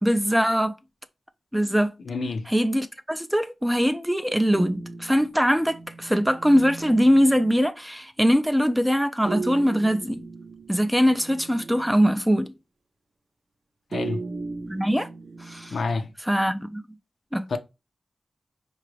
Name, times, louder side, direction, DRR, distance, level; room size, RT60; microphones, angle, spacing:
voice 1, 0.0-0.7 1.5-1.9 2.5-10.2 10.7-12.5 14.7-15.1 15.4-15.8 16.2-16.8 17.3-17.6, equal, 5° right, 0.4 m, -22 dB
voice 2, 2.0-2.5 13.9-14.2 15.7-16.1 17.5-17.6, left 4 dB, 75° left, 0.5 m, -28 dB
sound 1, 4.5-7.6 9.3-12.2 13.9-16.1, right 3 dB, 60° right, 0.5 m, -37 dB
4.8 x 2.3 x 3.2 m
wide cardioid pair, 125°, 0 cm